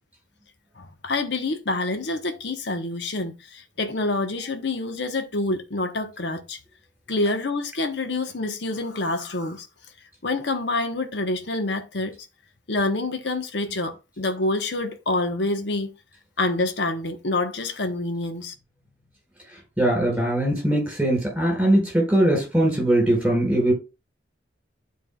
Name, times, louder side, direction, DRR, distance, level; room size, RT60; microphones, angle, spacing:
voice 1, 0.8-6.6 7.1-9.7 10.2-12.1 12.7-15.9 16.4-18.5, left 2 dB, 65° left, 1.0 m, -27 dB
voice 2, 19.8-23.7, right 1 dB, 5° right, 4.4 m, -21 dB
11.0 x 4.6 x 2.3 m
head